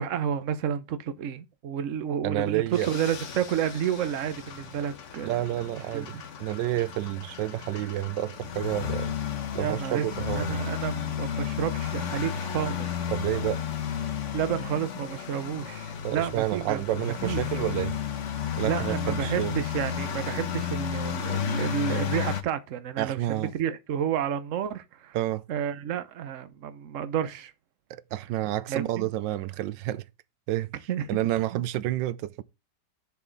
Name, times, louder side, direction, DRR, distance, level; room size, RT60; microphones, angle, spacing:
voice 1, 0.0-5.4 5.7-6.2 9.6-10.1 10.3-13.0 14.3-16.9 17.2-17.4 18.5-25.2 25.5-27.5 28.7-29.1 30.9-31.1 31.5-31.6, right 9 dB, 55° right, 1.1 m, -30 dB
voice 2, 2.2-2.9 5.2-9.1 9.5-10.6 13.1-13.6 16.0-18.0 18.6-19.5 23.0-23.5 25.1-25.4 27.9-30.0 30.5-30.7 31.1-32.4, right 14 dB, 90° right, 1.3 m, -29 dB
sound 1, 2.7-22.4, left 8 dB, 50° left, 1.1 m, -33 dB
7.1 x 7.0 x 4.0 m
omnidirectional pair, 1.9 m